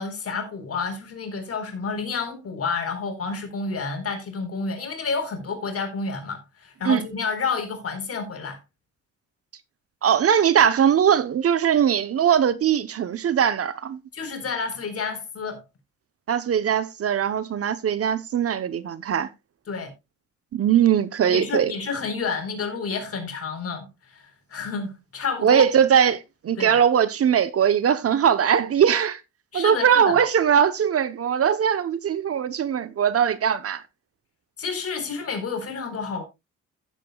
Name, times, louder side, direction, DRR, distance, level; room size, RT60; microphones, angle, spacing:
voice 1, 0.0-8.6 14.1-15.6 19.7-19.9 21.3-25.6 26.6-26.8 29.5-30.2 34.6-36.2, left 5 dB, 50° left, 4.1 m, -30 dB
voice 2, 10.0-14.0 16.3-19.3 20.5-21.7 25.4-29.2 29.5-33.8, right 8 dB, 50° right, 0.9 m, -20 dB
15.5 x 7.5 x 2.3 m
cardioid pair, 90°, 30 cm